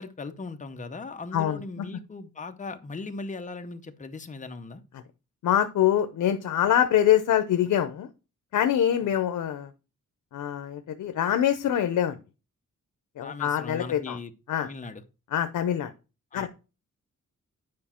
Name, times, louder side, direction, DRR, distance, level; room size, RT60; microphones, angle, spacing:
voice 1, 0.0-4.8 13.2-14.3 14.6-15.0 16.3-16.5, left 3 dB, 25° left, 7 dB, 0.7 m, -38 dB
voice 2, 1.3-1.8 5.4-8.1 8.5-9.7 10.3-12.2 13.2-14.2 14.5-14.7 15.3-15.9 16.3-16.5, left 10 dB, 80° left, 9 dB, 0.7 m, -24 dB
9.5 x 4.9 x 4.3 m, 0.32 s
wide cardioid pair, 175°, 31 cm